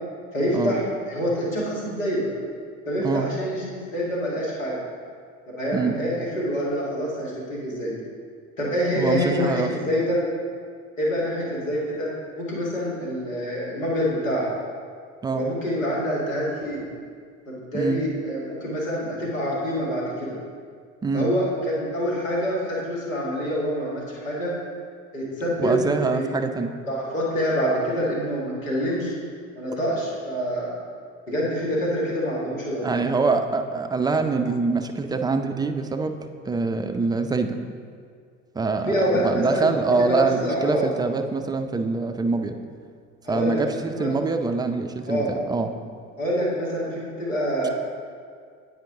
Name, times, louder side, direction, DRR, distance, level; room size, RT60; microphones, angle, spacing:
voice 1, 0.3-0.8 1.1-2.3 2.9-4.8 5.5-8.0 8.6-10.2 11.0-14.5 15.3-16.8 17.5-20.4 21.1-24.5 25.1-25.8 26.1-26.3 26.9-29.1 29.6-30.7 31.3-33.1 38.9-40.9 43.2-43.6 43.9-44.1 45.1-45.3 46.2-47.7, equal, 85° left, -5 dB, 1.6 m, -26 dB
voice 2, 8.9-9.7 15.2-15.5 17.7-18.0 21.0-21.3 25.6-26.8 32.8-36.2 36.5-37.6 38.5-42.6 43.3-45.7, right 4 dB, 10° right, 6 dB, 0.3 m, -24 dB
8.9 x 4.7 x 3.5 m, 2.1 s
hypercardioid pair, 60°, 38 cm